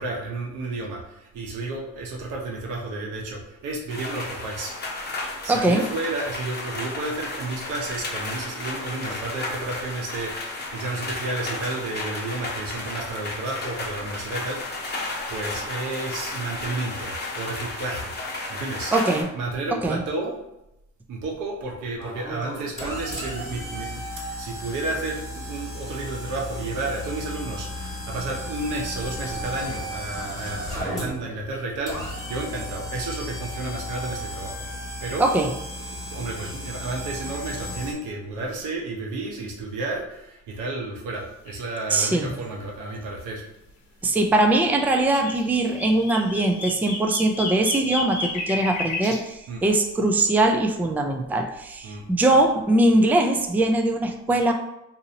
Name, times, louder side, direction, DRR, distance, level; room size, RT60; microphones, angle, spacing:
voice 1, 0.0-4.7 5.4-18.1 18.5-18.9 19.3-20.3 21.1-34.5 35.0-35.3 35.9-43.4 49.5-49.6 51.8-52.0, right 2 dB, 90° right, 0 dB, 0.9 m, -32 dB
sound 1, 3.9-19.2, left 2 dB, 35° left, 0.9 m, -33 dB
voice 2, 5.5-5.8 18.9-19.3 19.8-20.0 35.2-35.5 41.9-42.3 44.0-54.5, right 2 dB, 5° right, 3 dB, 0.3 m, -21 dB
sound 2, 22.0-37.9, left 1 dB, 10° left, 1.4 m, -34 dB
sound 3, 41.5-41.7 41.9-42.0 44.7-49.2, left 3 dB, 70° left, 0.9 m, -32 dB
2.7 x 2.6 x 3.9 m, 0.89 s
cardioid pair, 90°, 30 cm